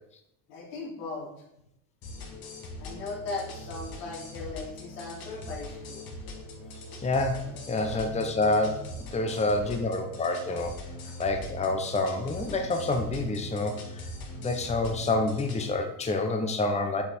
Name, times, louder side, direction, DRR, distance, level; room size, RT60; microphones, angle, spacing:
voice 1, 0.5-1.3 2.8-6.1 7.8-8.0 9.2-9.8 10.2-10.7 11.0-11.1, left 3 dB, 90° left, -2 dB, 3.0 m, -39 dB
sound 1, 2.0-15.7, left 1 dB, 45° left, 2.1 m, -41 dB
voice 2, 7.0-10.7 11.2-13.8 14.4-17.0, left 2 dB, 15° left, 4 dB, 0.9 m, -28 dB
8.3 x 5.2 x 4.4 m, 0.78 s
supercardioid pair, 110°, 48 cm